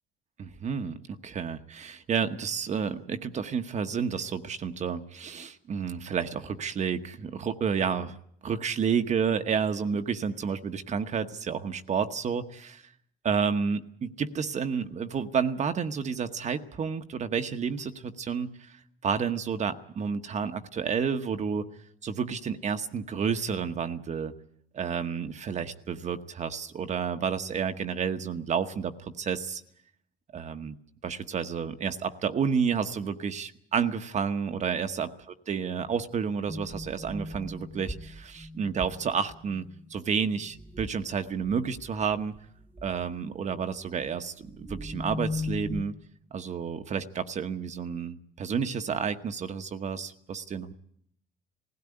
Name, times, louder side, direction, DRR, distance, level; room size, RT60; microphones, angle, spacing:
voice 1, 0.4-1.0 1.2-8.2 8.4-12.8 13.2-21.7 22.0-24.3 24.7-29.6 30.3-30.7 31.0-35.1 35.5-39.6 39.9-42.3 42.8-45.9 46.3-50.7, right 6 dB, 45° right, 8 dB, 1.1 m, -30 dB
sound 1, 36.5-39.9 40.4-41.1 41.4-42.4 42.7-43.0 44.5-45.8, left 2 dB, 10° right, 1.2 m, -38 dB
18.5 x 16.5 x 9.8 m, 0.68 s
cardioid pair, 110°, 17 cm